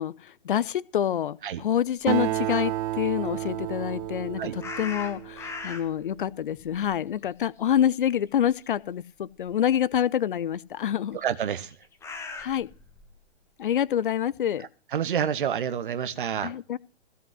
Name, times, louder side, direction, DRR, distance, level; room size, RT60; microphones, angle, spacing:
voice 1, 0.0-11.2 12.4-12.7 13.6-14.7 16.4-16.8, left 10 dB, 55° left, 0.5 m, -27 dB
Acoustic guitar, 2.1-5.9, right 14 dB, 25° right, 0.7 m, -31 dB
sound 1, 4.6-6.1 6.5-8.2 8.4-8.7 9.5-9.6 11.3-13.1, left 4 dB, 10° left, 1.1 m, -39 dB
voice 2, 11.1-11.8 14.9-16.5, right 8 dB, 50° right, 1.1 m, -28 dB
16.0 x 5.5 x 7.4 m
figure-of-eight pair, 115°, 32 cm